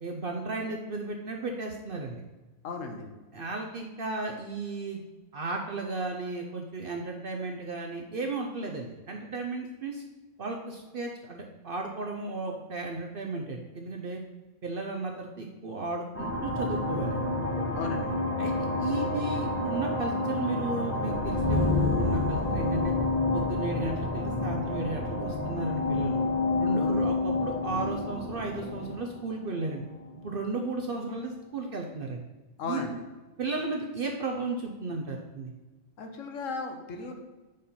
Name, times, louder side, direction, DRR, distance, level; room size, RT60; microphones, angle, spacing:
voice 1, 0.0-2.2 3.3-5.0 5.3-10.0 10.4-14.2 14.6-17.3 18.4-18.5 18.8-22.9 23.3-26.2 26.6-29.8 30.2-32.2 32.7-33.0 33.4-35.5, right 3 dB, 55° right, 2 dB, 0.7 m, -34 dB
voice 2, 2.6-3.1 17.7-18.2 26.8-27.1 32.6-32.9 36.0-37.2, left 4 dB, 70° left, 5 dB, 1.2 m, -36 dB
sound 1, 16.1-30.3, left 2 dB, 10° left, 0.9 m, -29 dB
5.4 x 5.0 x 4.2 m, 1.2 s
omnidirectional pair, 1.4 m